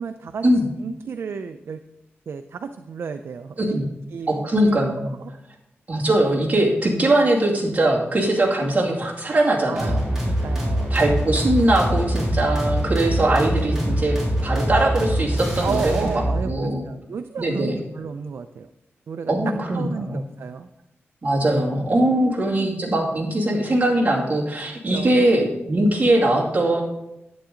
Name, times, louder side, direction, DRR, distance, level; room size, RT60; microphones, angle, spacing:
voice 1, 0.0-1.8 2.3-4.7 5.2-5.3 9.7-10.9 15.6-18.7 19.1-19.3 19.7-20.7 21.9-22.7 24.7-25.2, right 6 dB, 75° right, 8 dB, 0.5 m, -33 dB
voice 2, 4.3-5.1 5.9-10.0 10.9-16.1 16.4-16.9 17.4-17.8 19.3-20.2 21.2-26.8, right 1 dB, 35° right, -4 dB, 2.4 m, -21 dB
sound 1, 9.8-16.4, equal, 10° right, 3.9 m, -24 dB
11.5 x 8.2 x 3.8 m, 0.88 s
wide cardioid pair, 110°, 4 cm